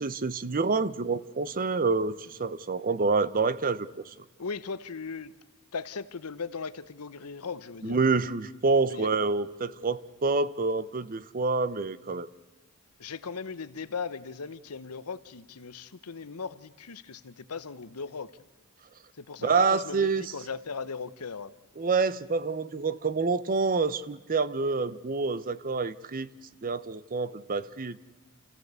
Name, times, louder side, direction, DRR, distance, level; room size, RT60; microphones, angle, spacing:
voice 1, 0.0-4.0 7.8-12.3 19.4-20.3 21.8-26.3 26.6-28.0, right 4 dB, 40° right, 0.7 m, -27 dB
voice 2, 4.4-5.3 5.7-8.0 8.9-9.1 13.0-18.3 19.2-21.5, left 5 dB, 85° left, 0.9 m, -38 dB
29.0 x 15.5 x 8.1 m
head